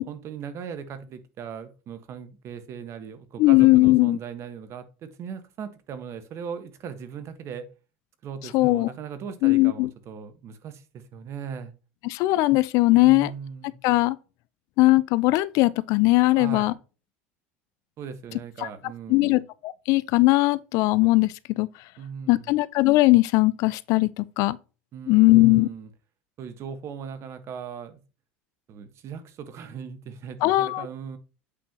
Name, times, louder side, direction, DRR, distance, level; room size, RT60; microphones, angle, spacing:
voice 1, 0.0-7.7 8.2-11.7 12.9-13.8 16.4-16.8 18.0-19.4 22.0-22.6 24.9-25.9 26.4-28.0 28.7-31.2, right 7 dB, 45° right, 1.4 m, -38 dB
voice 2, 3.4-4.2 8.5-8.9 9.4-9.9 12.0-13.3 13.8-14.2 14.8-16.7 19.1-21.7 22.3-24.6 25.1-25.7 30.4-30.9, left 20 dB, 60° left, 0.5 m, -19 dB
8.4 x 5.6 x 2.9 m
supercardioid pair, 95°, 6 cm